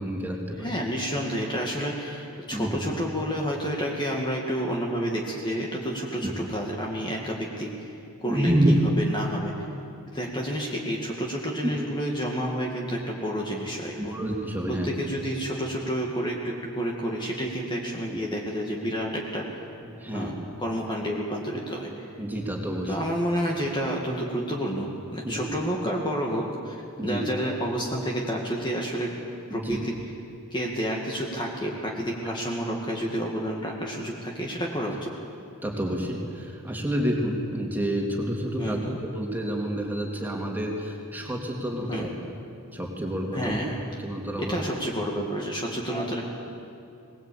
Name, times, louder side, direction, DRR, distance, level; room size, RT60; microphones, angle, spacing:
voice 1, 0.0-0.7 2.5-2.8 6.2-6.3 8.3-8.7 11.6-11.7 14.0-14.9 19.9-20.3 22.2-23.0 25.2-25.4 27.0-27.2 29.5-29.8 35.6-38.8 39.1-42.1 42.7-43.6 44.0-44.6 45.9-46.1, right 1 dB, 10° right, -1 dB, 3.2 m, -28 dB
voice 2, 0.6-7.7 8.2-9.5 10.1-14.2 14.7-19.6 20.1-22.1 22.9-29.1 29.5-29.9 30.5-35.1 38.6-39.0 41.9-42.2 43.3-43.8 44.4-46.2, equal, 20° left, -1 dB, 2.1 m, -30 dB
22.5 x 20.0 x 8.7 m, 2.6 s
head